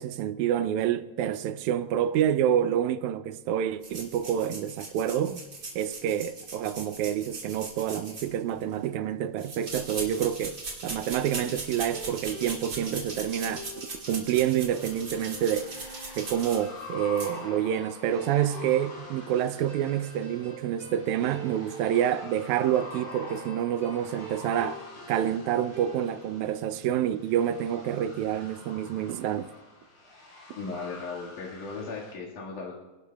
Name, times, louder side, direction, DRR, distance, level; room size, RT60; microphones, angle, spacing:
voice 1, 0.0-5.4 5.8-15.7 16.2-24.8 25.1-29.5, right 10 dB, 80° right, 2.0 m, -28 dB
sound 1, 3.8-8.7 9.4-16.9 17.2-17.3, right 3 dB, 40° right, 2.9 m, -39 dB
sound 2, 11.6-26.1, right 3 dB, 15° left, 4.9 m, -46 dB
sound 3, 14.7-32.1, left 2 dB, 50° left, 3.6 m, -46 dB
voice 2, 30.6-32.7, left 4 dB, 85° left, 3.4 m, -37 dB
29.0 x 11.5 x 2.3 m
omnidirectional pair, 3.5 m